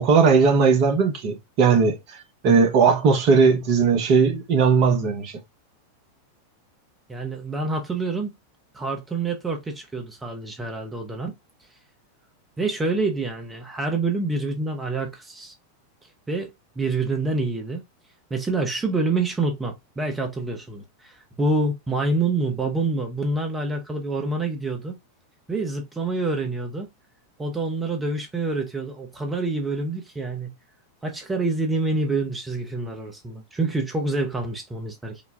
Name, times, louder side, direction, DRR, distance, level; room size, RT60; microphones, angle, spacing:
voice 1, 0.0-2.0 2.4-5.3, right 5 dB, 40° right, 0.9 m, -18 dB
voice 2, 7.1-8.3 8.7-11.3 12.6-15.5 16.3-17.8 18.3-25.0 25.5-26.9 27.4-30.5 31.0-35.2, right 3 dB, 15° right, 0.8 m, -27 dB
3.9 x 2.2 x 3.3 m
figure-of-eight pair, 90°, 0 cm